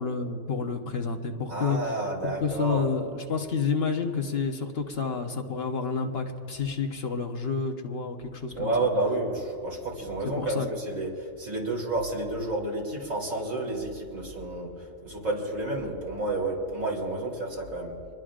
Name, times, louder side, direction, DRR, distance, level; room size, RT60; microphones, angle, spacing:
voice 1, 0.0-8.9 10.2-10.7, left 5 dB, 50° left, 3 dB, 1.3 m, -30 dB
voice 2, 1.5-2.8 8.6-11.1 11.4-14.7 15.0-17.9, right 2 dB, 90° right, -2 dB, 3.9 m, -30 dB
26.0 x 21.0 x 2.5 m, 2.4 s
omnidirectional pair, 1.3 m